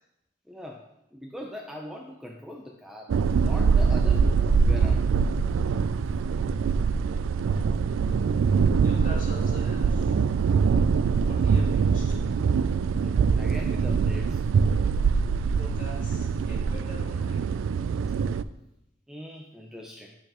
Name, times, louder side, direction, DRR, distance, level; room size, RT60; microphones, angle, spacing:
voice 1, 0.5-0.8 1.1-4.3 4.6-5.1 12.8-14.4 19.1-20.2, left 1 dB, 5° right, 0 dB, 0.5 m, -41 dB
sound 1, 3.1-18.4, right 5 dB, 90° right, 0.3 m, -23 dB
voice 2, 8.7-10.3 11.2-12.2 15.1-15.2 15.5-17.5, equal, 40° left, -5 dB, 2.7 m, -44 dB
10.0 x 6.7 x 2.9 m, 0.83 s
head